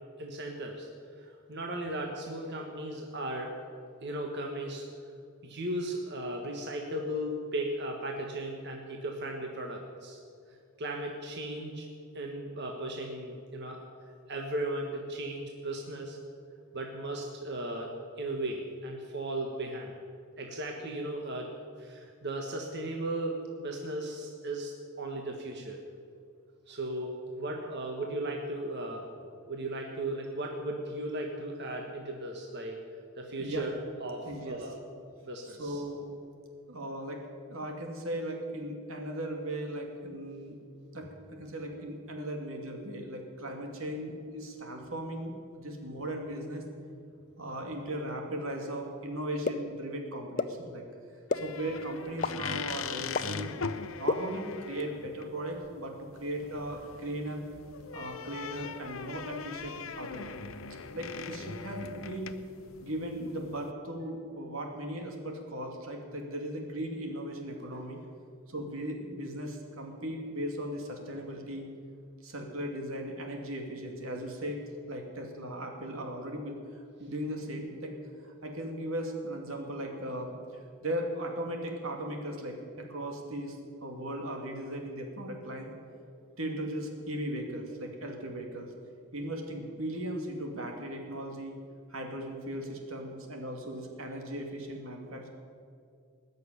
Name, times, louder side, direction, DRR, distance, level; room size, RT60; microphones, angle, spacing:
voice 1, 0.2-3.5 4.0-4.8 5.4-10.2 10.8-11.9 12.1-13.8 14.3-16.2 16.7-17.9 18.2-20.0 20.4-25.8 26.7-29.1 29.5-32.8 33.2-33.7 34.0-34.7 35.2-35.8 51.3-51.4, right 1 dB, 55° right, 1 dB, 1.5 m, -36 dB
voice 2, 34.3-34.6 35.4-36.0 36.7-37.2 37.5-40.6 40.9-46.7 47.4-50.8 51.3-53.5 54.0-57.4 57.9-60.5 60.9-62.4 62.8-68.0 68.5-71.7 72.2-74.6 74.9-78.0 78.2-80.3 80.8-85.7 86.4-88.7 89.1-91.6 91.9-95.3, right 1 dB, 80° right, 2 dB, 2.5 m, -37 dB
sound 1, 49.5-49.6 50.4-50.5 51.3-51.4 52.2-52.3 53.2-53.3 54.1-54.2, left 4 dB, 40° left, 0.6 m, -26 dB
sound 2, 51.3-63.7, left 6 dB, 75° left, 0.7 m, -41 dB
20.0 x 6.8 x 9.8 m, 2.3 s
head